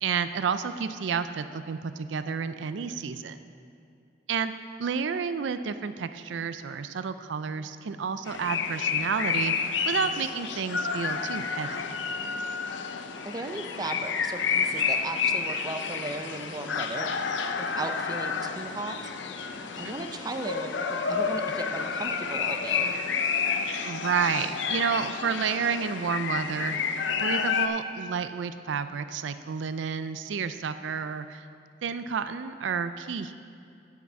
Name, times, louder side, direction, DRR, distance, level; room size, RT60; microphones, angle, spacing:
voice 1, 0.0-3.4 4.3-4.5 4.8-9.5 9.9-11.8 19.7-19.9 23.9-26.8 27.2-31.4 31.8-33.3, right 6 dB, 85° right, 11 dB, 0.4 m, -30 dB
sound 1, 8.3-27.7, left 6 dB, 85° left, 0.6 m, -30 dB
voice 2, 13.2-17.1 17.6-19.0 19.8-23.0, right 2 dB, 20° right, 6 dB, 0.5 m, -36 dB
9.3 x 5.9 x 7.3 m, 2.4 s
head